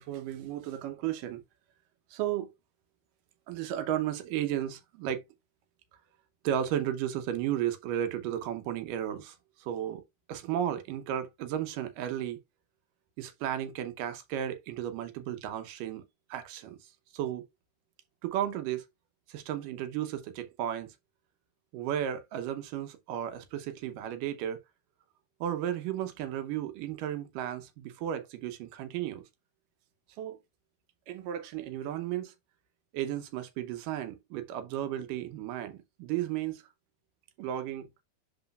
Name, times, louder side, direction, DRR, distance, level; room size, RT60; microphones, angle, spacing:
voice 1, 0.0-1.4 2.1-2.5 3.5-5.2 6.4-10.0 10.3-12.4 13.2-16.0 16.3-16.8 17.1-17.4 18.2-18.9 19.3-20.9 21.7-24.6 25.4-29.2 30.2-30.4 31.1-32.3 32.9-36.6 37.4-37.9, right 11 dB, 80° right, 2.4 m, -34 dB
11.0 x 3.9 x 2.3 m
omnidirectional pair, 3.9 m